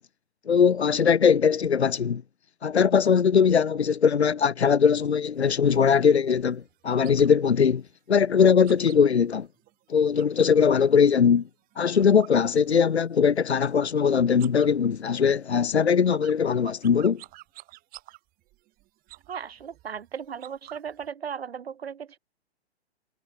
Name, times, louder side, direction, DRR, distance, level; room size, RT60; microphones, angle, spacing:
voice 1, 0.5-2.2 2.6-7.8 8.1-9.5 9.9-11.4 11.8-17.2, left 6 dB, 80° left, 1.3 m, -21 dB
sound 1, 5.4-10.7 11.0-13.2 13.4-14.0 14.3-21.1, right 18 dB, 25° right, 4.5 m, -51 dB
voice 2, 19.3-22.2, right 7 dB, 65° right, 6.9 m, -36 dB
figure-of-eight pair, 125°, 32 cm